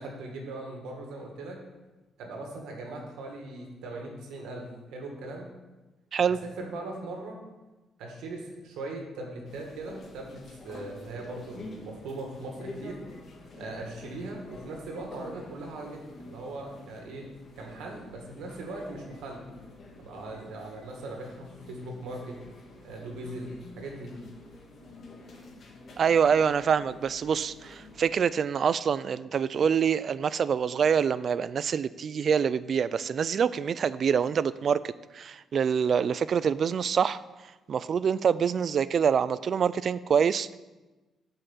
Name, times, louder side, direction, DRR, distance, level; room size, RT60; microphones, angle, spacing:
voice 1, 0.0-1.6 2.2-5.5 6.3-7.4 8.0-13.1 13.6-17.2 17.6-19.4 20.0-22.4 22.8-23.5 23.8-24.1, right 2 dB, 85° right, 1 dB, 1.9 m, -39 dB
sound 1, 9.4-28.1, left 2 dB, 50° left, 1.8 m, -48 dB
voice 2, 26.0-37.2 37.7-40.6, right 7 dB, 55° right, 17 dB, 0.3 m, -25 dB
6.9 x 5.6 x 7.2 m, 1.1 s
cardioid pair, 90°, 0 cm